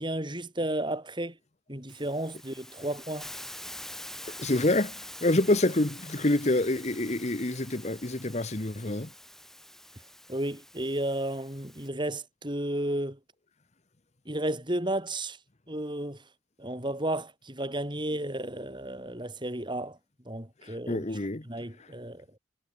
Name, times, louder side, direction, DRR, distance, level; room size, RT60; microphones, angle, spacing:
voice 1, 0.0-1.4 1.7-3.3 10.3-13.2 14.3-15.4 15.7-16.2 16.6-20.0 20.3-21.1 21.5-22.3, right 1 dB, 25° right, 5.3 m, -33 dB
Hiss, 1.9-11.9, left 1 dB, ahead, 6.0 m, -46 dB
voice 2, 4.4-9.1 20.6-21.5 21.8-21.9, left 2 dB, 35° left, 1.2 m, -27 dB
head